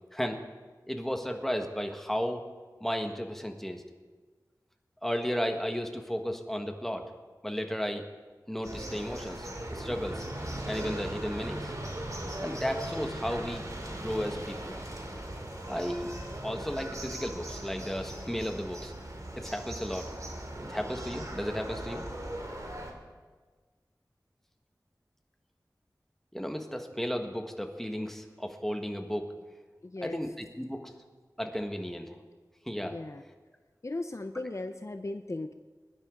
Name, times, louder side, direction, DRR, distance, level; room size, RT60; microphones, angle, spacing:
voice 1, 0.9-2.4 2.8-3.8 5.0-7.0 7.4-8.0 8.5-10.2 10.6-11.7 12.4-14.8 15.7-16.1 16.4-18.9 19.4-20.0 20.6-22.1 26.3-29.3 30.0-30.9 31.4-32.2 32.6-32.9, equal, 5° left, 4 dB, 1.5 m, -34 dB
sound 1, 8.6-17.6, right 1 dB, 30° right, 2.0 m, -50 dB
sound 2, 8.6-22.9, right 1 dB, 50° right, 2.4 m, -39 dB
voice 2, 29.8-30.2 32.8-33.2 33.8-35.5, left 2 dB, 45° left, 7 dB, 0.6 m, -37 dB
21.0 x 11.0 x 3.9 m, 1.4 s
wide cardioid pair, 45°, 7 cm